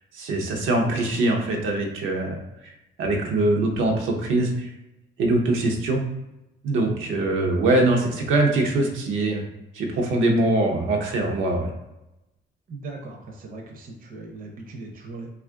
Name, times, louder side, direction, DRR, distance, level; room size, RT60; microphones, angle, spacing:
voice 1, 0.1-2.7 3.0-4.7 5.2-6.1 6.6-9.4 9.7-11.7, right 2 dB, 90° right, 1 dB, 0.7 m, -23 dB
voice 2, 12.7-15.3, right 3 dB, 45° right, 1 dB, 0.6 m, -39 dB
2.7 x 2.4 x 3.5 m, 0.94 s
cardioid pair, 90°, 20 cm